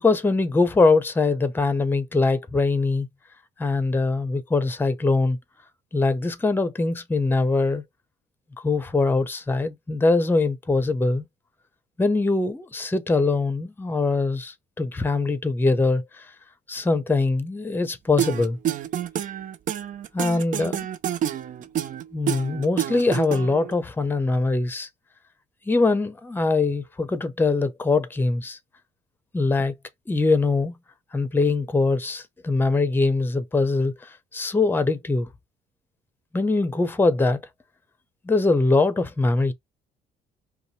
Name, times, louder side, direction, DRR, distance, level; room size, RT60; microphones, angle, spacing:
voice 1, 0.0-3.1 3.6-5.4 5.9-7.8 8.6-11.3 12.0-16.3 16.7-18.6 20.1-20.9 22.1-24.9 25.7-28.6 29.3-29.7 30.1-30.8 31.1-35.3 36.3-37.4 38.2-39.5, left 3 dB, 10° left, 0.7 m, -22 dB
sound 1, 18.2-23.7, right 10 dB, 50° right, 0.6 m, -28 dB
5.2 x 2.3 x 3.1 m
cardioid pair, 110°, 17 cm